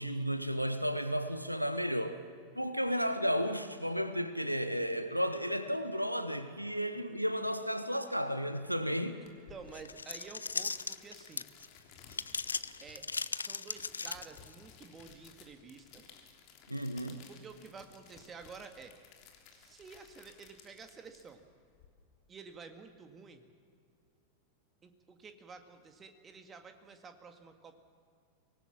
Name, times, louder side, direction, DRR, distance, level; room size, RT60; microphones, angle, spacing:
voice 1, 0.0-2.2 2.6-9.2 16.7-17.2, equal, 90° right, 11 dB, 1.0 m, -33 dB
voice 2, 9.2-11.5 12.8-16.0 17.3-19.0 19.5-21.4 22.3-23.4 24.8-27.8, right 5 dB, 20° right, 6 dB, 1.9 m, -51 dB
sound 1, 9.3-21.9, left 7 dB, 40° left, 3.3 m, -58 dB
sound 2, 9.7-11.7 12.1-14.5, left 4 dB, 75° left, 0.5 m, -37 dB
25.0 x 18.5 x 7.4 m, 2.3 s
figure-of-eight pair, 90°, 0 cm